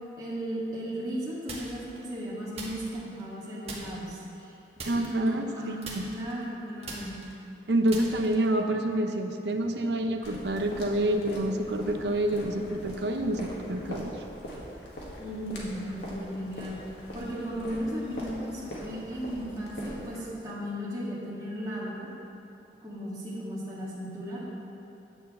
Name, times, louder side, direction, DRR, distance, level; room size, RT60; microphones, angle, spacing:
voice 1, 0.2-4.5 4.9-7.2 15.2-16.8 17.1-22.1 22.8-24.4, equal, 20° right, -8 dB, 1.8 m, -36 dB
sound 1, 1.5-2.0 2.5-3.4 3.7-4.2 4.8-5.6 5.8-8.6, right 3 dB, 35° right, 1.3 m, -41 dB
voice 2, 4.8-6.0 7.7-14.1, right 1 dB, 75° right, 5 dB, 0.7 m, -28 dB
sound 2, 10.2-20.2, equal, 75° left, 1.7 m, -42 dB
9.9 x 4.7 x 7.4 m, 2.8 s
head